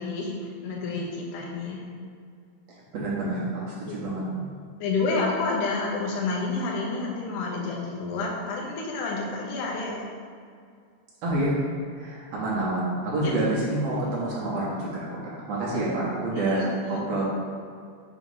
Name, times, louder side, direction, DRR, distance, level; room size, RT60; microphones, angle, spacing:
voice 1, 0.0-1.8 3.9-4.0 4.8-10.0 13.2-13.3 16.4-17.0, left 3 dB, 75° left, -2 dB, 1.9 m, -29 dB
voice 2, 2.9-4.4 11.2-11.6 11.9-15.2 15.5-17.2, right 2 dB, 75° right, -7 dB, 1.5 m, -28 dB
6.2 x 3.0 x 5.4 m, 2.2 s
omnidirectional pair, 4.6 m